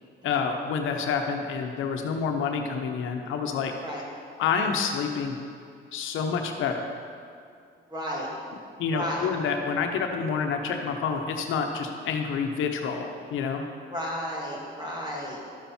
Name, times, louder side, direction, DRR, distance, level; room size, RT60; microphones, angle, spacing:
voice 1, 0.2-3.7 4.4-5.4 5.9-7.0 8.8-13.6, left 6 dB, 85° left, 4 dB, 1.0 m, -28 dB
voice 2, 7.9-8.3 8.9-9.3 13.9-15.4, equal, 20° right, -4 dB, 2.6 m, -33 dB
12.5 x 7.0 x 4.4 m, 2.3 s
cardioid pair, 90°, 20 cm